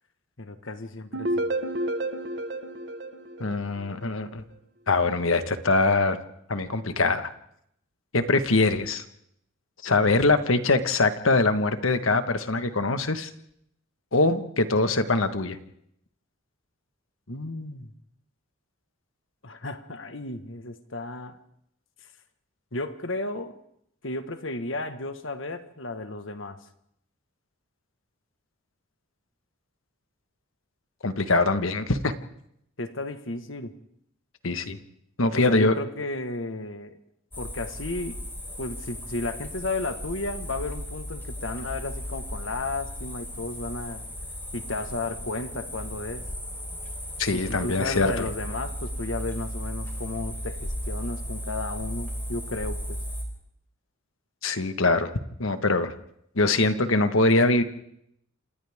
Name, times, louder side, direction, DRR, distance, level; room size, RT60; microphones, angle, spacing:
voice 1, 0.4-1.5 17.3-17.9 19.4-21.4 22.7-23.5 24.0-26.6 32.8-33.7 35.3-37.0 37.4-38.2 38.6-44.0 44.5-46.3 47.3-53.0, left 2 dB, 70° left, 8 dB, 1.6 m, -33 dB
sound 1, 1.1-4.1, right 1 dB, 60° right, 1.4 m, -30 dB
voice 2, 3.4-4.4 4.9-6.2 6.5-7.3 8.1-9.0 9.8-13.3 14.1-15.6 31.0-32.1 34.4-34.8 35.2-35.7 47.2-48.2 54.4-55.1 55.4-55.9 56.3-57.6, left 3 dB, 85° left, 9 dB, 1.5 m, -23 dB
sound 2, 37.3-53.2, equal, 10° left, 4.1 m, -36 dB
27.5 x 27.5 x 3.7 m, 0.74 s
head